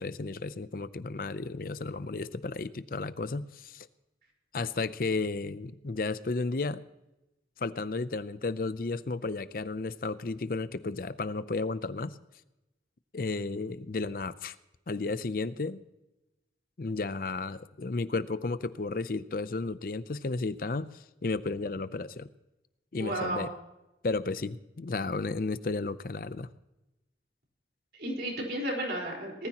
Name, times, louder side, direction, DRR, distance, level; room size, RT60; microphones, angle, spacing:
voice 1, 0.0-3.9 4.5-6.8 7.6-12.2 13.1-14.6 14.9-15.8 16.8-20.9 21.2-22.3 22.9-23.5 24.0-26.5, left 3 dB, 55° left, 15 dB, 0.5 m, -33 dB
voice 2, 23.0-23.5 28.0-29.5, right 1 dB, 65° right, -2 dB, 4.4 m, -33 dB
19.5 x 13.5 x 2.9 m, 0.95 s
head